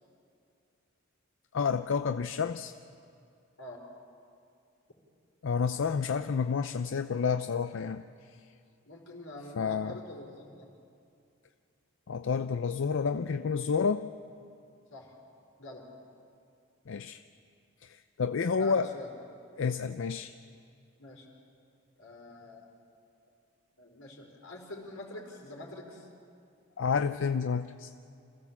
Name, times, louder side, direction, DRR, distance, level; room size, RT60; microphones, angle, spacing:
voice 1, 1.5-2.7 5.4-8.1 9.6-10.0 12.1-14.1 16.9-17.2 17.8-18.9 19.6-20.3 26.8-27.9, left 5 dB, 65° left, 10 dB, 0.5 m, -30 dB
voice 2, 8.8-10.7 14.9-15.2 15.6-15.9 18.5-19.1 21.0-21.3 22.0-22.7 23.8-26.1, left 2 dB, 85° left, 0 dB, 4.2 m, -45 dB
27.0 x 16.0 x 7.2 m, 2.4 s
head